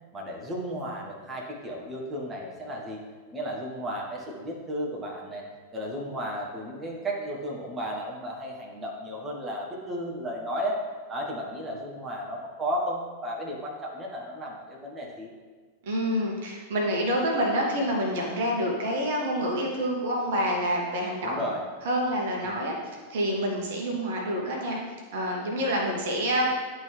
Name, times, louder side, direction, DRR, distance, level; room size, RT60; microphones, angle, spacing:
voice 1, 0.1-3.0 3.3-5.4 5.7-10.8 11.1-15.3 21.2-21.6 22.4-22.5, equal, 15° right, -2 dB, 1.2 m, -34 dB
voice 2, 15.8-21.4 21.8-22.7 23.1-24.8 25.1-26.5, equal, 55° right, -1 dB, 1.1 m, -27 dB
10.5 x 3.6 x 3.3 m, 1.5 s
figure-of-eight pair, 90°, 0 cm